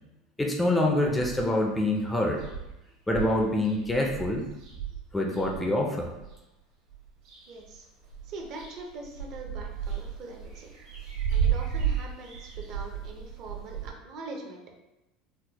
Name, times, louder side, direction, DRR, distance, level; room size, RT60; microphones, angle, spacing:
voice 1, 0.4-2.4 3.1-4.5 5.1-6.1, left 1 dB, 10° left, 1 dB, 0.3 m, -26 dB
sound 1, 1.0-1.6 2.0-2.1 2.3-6.4 6.9-7.7 8.0-13.9, right 8 dB, 65° right, 1.4 m, -34 dB
voice 2, 7.5-7.9 8.2-10.7 11.3-14.6, right 3 dB, 50° right, 2 dB, 0.6 m, -42 dB
4.2 x 2.0 x 2.8 m, 0.96 s
supercardioid pair, 140°, 0 cm